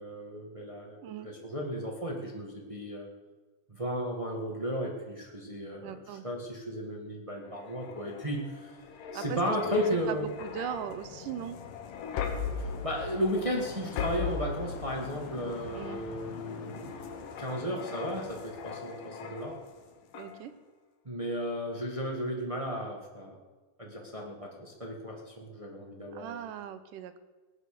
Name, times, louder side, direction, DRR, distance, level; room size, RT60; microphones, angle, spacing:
voice 1, 0.0-1.0 1.2-3.1 3.7-8.7 9.1-10.3 12.6-19.6 21.0-23.4 23.8-26.4, equal, 25° right, 0 dB, 0.7 m, -34 dB
voice 2, 5.8-6.3 9.1-11.6 15.7-16.0 20.1-20.5 26.1-27.2, right 10 dB, 75° right, 11 dB, 2.4 m, -39 dB
sound 1, 7.5-19.8 20.1-20.4, left 6 dB, 75° left, 2.9 m, -39 dB
17.5 x 9.5 x 6.8 m, 1.3 s
omnidirectional pair, 4.0 m